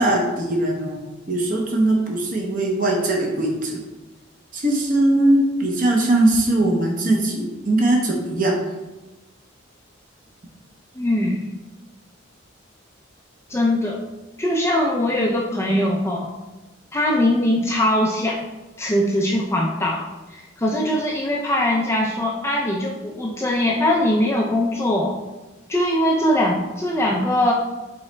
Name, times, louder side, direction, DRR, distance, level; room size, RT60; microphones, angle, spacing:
voice 1, 0.0-3.8 4.5-8.6, right 1 dB, 40° right, 0 dB, 0.8 m, -20 dB
voice 2, 10.9-11.5 13.5-14.0 14.4-16.3 16.9-18.4 18.8-25.2 25.7-27.5, left 1 dB, 15° left, -2 dB, 0.4 m, -21 dB
5.6 x 3.9 x 2.2 m, 1.1 s
head